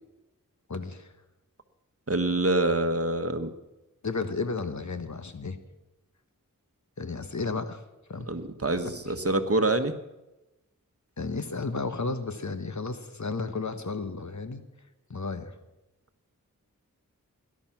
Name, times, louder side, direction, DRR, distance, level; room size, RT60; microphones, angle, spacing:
voice 1, 0.7-1.1 4.0-5.6 7.0-7.8 8.1-8.3 9.0-9.1 11.2-14.6 15.1-15.5, left 4 dB, 60° left, 10 dB, 1.3 m, -33 dB
voice 2, 2.1-3.5 8.3-9.9, right 2 dB, 45° right, 9 dB, 1.4 m, -26 dB
18.0 x 11.5 x 6.0 m, 1.0 s
wide cardioid pair, 40°, 32 cm